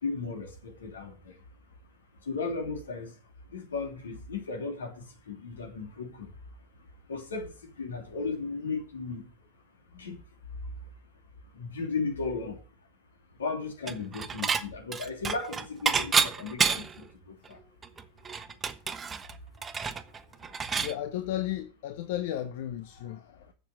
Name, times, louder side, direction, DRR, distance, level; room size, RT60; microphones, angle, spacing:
voice 1, 0.0-1.1 2.3-3.1 3.5-6.3 7.1-9.3 10.0-10.2 11.6-12.6 13.4-17.6, left 4 dB, 75° left, 2.9 m, -35 dB
Dishes pots and pans / Chink clink, 13.9-14.6 14.9-17.0 17.5-17.6 17.8-20.9, right 6 dB, 20° right, 1.0 m, -29 dB
voice 2, 20.8-23.5, left 12 dB, 60° left, 0.8 m, -34 dB
7.7 x 7.3 x 7.7 m
figure-of-eight pair, 85°, 0 cm